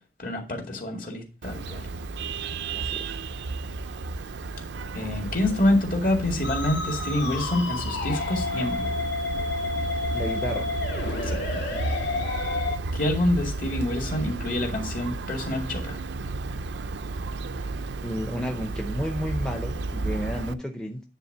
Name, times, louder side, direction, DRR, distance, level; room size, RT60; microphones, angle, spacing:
voice 1, 0.2-1.8 4.9-9.0 11.3-11.6 12.9-16.0, left 1 dB, 50° left, 1 dB, 2.2 m, -27 dB
Vehicle horn car horn honking, 1.4-20.5, right 3 dB, 70° right, 0.5 m, -33 dB
voice 2, 2.7-3.1 10.1-10.7 18.0-21.0, equal, 5° left, 3 dB, 0.6 m, -32 dB
Musical instrument, 6.4-12.8, left 3 dB, 75° left, 1.9 m, -30 dB
9.8 x 3.6 x 6.6 m, 0.32 s
head